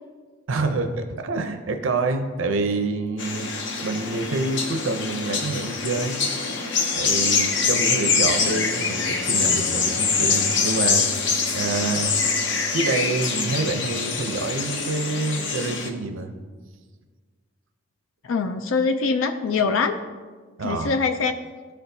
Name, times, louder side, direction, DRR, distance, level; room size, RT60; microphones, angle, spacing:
voice 1, 0.5-3.5 3.8-6.2 6.9-11.3 11.5-12.2 12.7-16.3 20.6-20.9, right 3 dB, 80° right, 6 dB, 0.6 m, -27 dB
sound 1, 3.2-15.9, left 4 dB, 65° left, 0.8 m, -24 dB
voice 2, 18.2-20.0 20.6-21.3, left 4 dB, 85° left, 8 dB, 0.4 m, -23 dB
13.0 x 4.4 x 2.7 m, 1.5 s
head